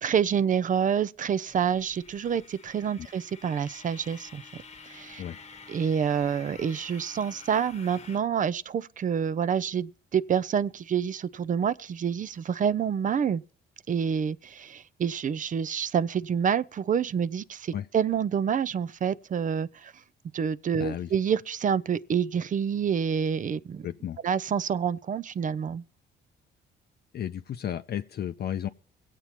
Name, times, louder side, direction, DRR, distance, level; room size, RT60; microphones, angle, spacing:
voice 1, 0.0-4.4 4.9-5.2 5.7-13.4 13.9-19.9 20.3-23.9 24.2-25.8, right 7 dB, 40° right, 0.5 m, -27 dB
sound 1, 1.5-8.2, left 4 dB, 35° left, 1.1 m, -49 dB
voice 2, 20.8-21.1 23.8-24.2 27.1-28.7, left 10 dB, 55° left, 0.5 m, -33 dB
23.5 x 8.2 x 2.9 m
cardioid pair, 90°, 20 cm